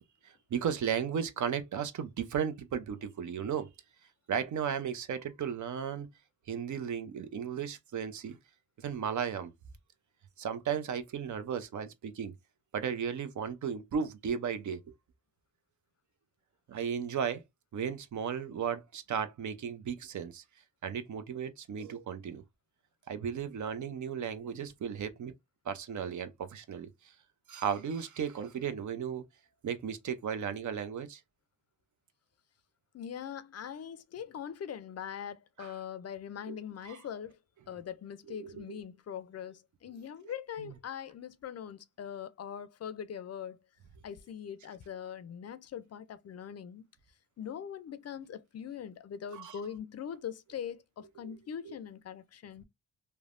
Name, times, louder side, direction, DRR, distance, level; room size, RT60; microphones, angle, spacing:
voice 1, 0.5-3.7 4.3-6.1 6.5-8.4 8.8-9.5 10.4-12.3 12.7-14.8 16.7-17.4 17.7-20.4 20.8-22.4 23.1-25.3 25.7-26.9 27.5-29.2 29.6-31.2 35.6-35.7 36.5-36.6 36.9-37.0 38.4-38.8 49.3-49.6 51.2-51.3 51.7-51.8, right 7 dB, 60° right, 0.6 m, -35 dB
voice 2, 32.9-37.4 37.7-43.6 44.0-46.9 47.4-52.6, left 8 dB, 50° left, 0.4 m, -42 dB
3.2 x 2.1 x 2.4 m
cardioid pair, 75°, 34 cm